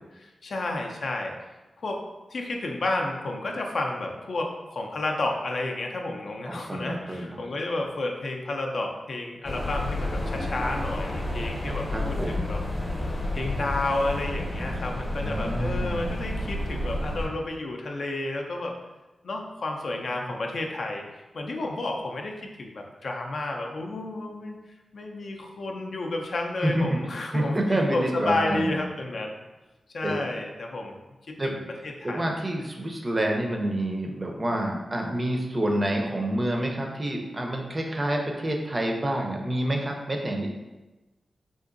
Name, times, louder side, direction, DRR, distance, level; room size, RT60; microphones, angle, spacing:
voice 1, 0.1-1.3 1.8-2.0 2.3-12.6 13.3-18.7 19.2-24.6 24.9-29.3 29.9-31.0 31.4-32.3, left 2 dB, 65° left, 1 dB, 0.4 m, -31 dB
voice 2, 6.4-7.4 11.9-12.4 15.2-16.2 26.6-27.0 27.3-28.8 30.0-30.1 31.4-31.5 32.0-40.5, right 1 dB, 25° right, 1 dB, 0.4 m, -28 dB
sound 1, 9.4-17.3, left 1 dB, 35° left, 0.8 m, -30 dB
3.7 x 2.5 x 2.5 m, 1.1 s
wide cardioid pair, 110°, 0 cm